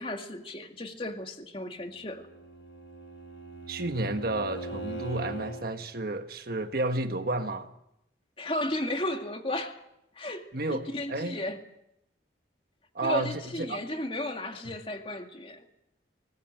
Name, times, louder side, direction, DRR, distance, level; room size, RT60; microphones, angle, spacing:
voice 1, 0.0-2.2 8.4-9.8 10.2-11.6 13.0-15.6, left 1 dB, 30° left, 2.2 m, -34 dB
Bowed string instrument, 2.0-5.7, right 2 dB, 70° left, 5.6 m, -40 dB
voice 2, 3.7-7.7 10.5-11.4 12.9-13.8, right 2 dB, 50° right, 1.4 m, -31 dB
24.0 x 20.0 x 7.8 m
head